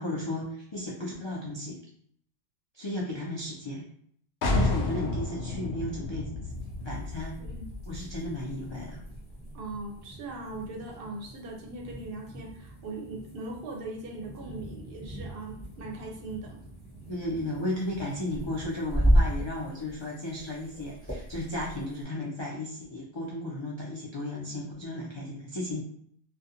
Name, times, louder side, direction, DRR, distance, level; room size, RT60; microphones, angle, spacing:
voice 1, 0.0-1.8 2.7-3.8 4.5-6.3 6.8-7.4 7.9-9.0 17.1-25.8, left 1 dB, 45° left, -4 dB, 0.3 m, -34 dB
sound 1, 4.4-10.0, left 2 dB, 85° left, 0.8 m, -32 dB
sound 2, 6.5-22.0, equal, 15° left, 1.1 m, -34 dB
voice 2, 9.5-16.6, right 2 dB, 65° right, 1 dB, 0.7 m, -40 dB
2.4 x 2.2 x 2.7 m, 0.65 s
omnidirectional pair, 1.1 m